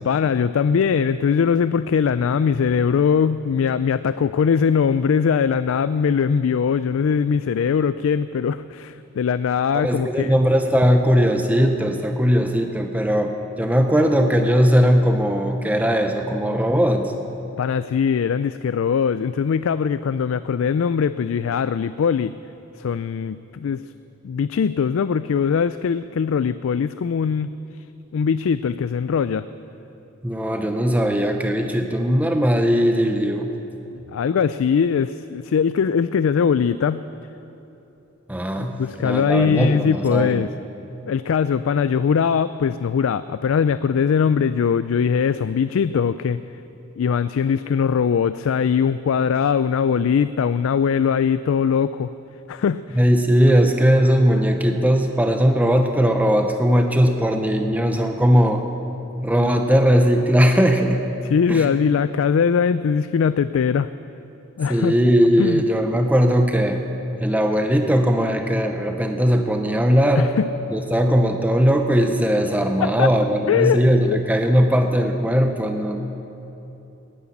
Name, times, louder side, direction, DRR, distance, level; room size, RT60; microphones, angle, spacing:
voice 1, 0.0-10.3 17.6-22.3 22.8-23.8 24.2-27.5 28.1-29.5 33.9-37.0 38.6-40.5 41.1-46.4 47.0-52.1 52.5-53.0 61.2-63.9 64.6-64.9 65.4-65.6 70.2-70.5 72.8-73.1 73.5-73.8 74.0-74.2, left 6 dB, 80° left, 13 dB, 0.3 m, -21 dB
voice 2, 9.7-17.1 30.2-33.5 38.3-38.7 39.0-40.4 53.0-58.6 59.2-61.0 61.5-61.7 64.7-66.8 67.2-70.3 70.7-76.0, equal, 10° right, 5 dB, 0.7 m, -19 dB
18.5 x 10.0 x 7.2 m, 2.9 s
head